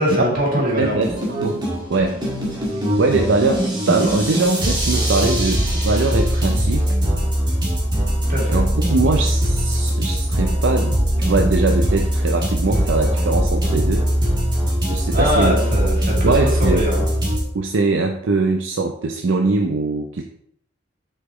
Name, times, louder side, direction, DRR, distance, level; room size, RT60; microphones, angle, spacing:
voice 1, 0.0-1.0 8.3-8.6 15.1-16.3 16.6-17.0, equal, 50° right, -3 dB, 2.4 m, -21 dB
voice 2, 0.5-1.6 1.9-2.2 3.0-7.0 8.5-14.1 14.9-15.5 16.2-16.8 17.5-20.2, right 3 dB, 75° right, 4 dB, 0.5 m, -21 dB
sound 1, 0.8-17.4, equal, 25° right, 1.8 m, -21 dB
6.3 x 5.7 x 3.0 m, 0.71 s
head